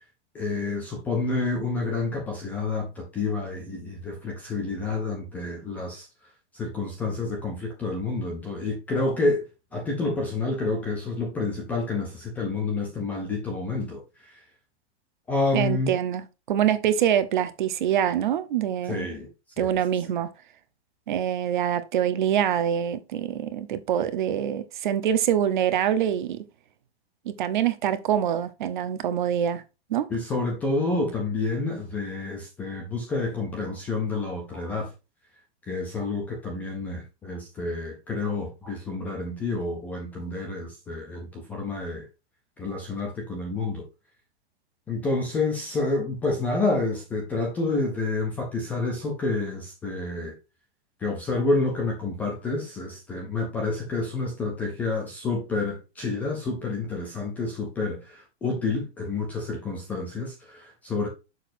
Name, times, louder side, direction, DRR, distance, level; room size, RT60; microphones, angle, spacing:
voice 1, 0.3-6.1 6.5-9.4 9.7-14.4 15.3-15.9 18.9-19.3 19.6-19.8 30.1-34.9 35.7-42.0 42.6-43.8 44.9-50.3 51.0-61.1, left 3 dB, 5° left, 0.5 m, -29 dB
voice 2, 15.5-19.1 19.6-20.3 21.1-26.4 27.2-29.6 29.9-30.1, right 10 dB, 45° right, 0.9 m, -25 dB
6.6 x 6.1 x 2.6 m
supercardioid pair, 175°, 33 cm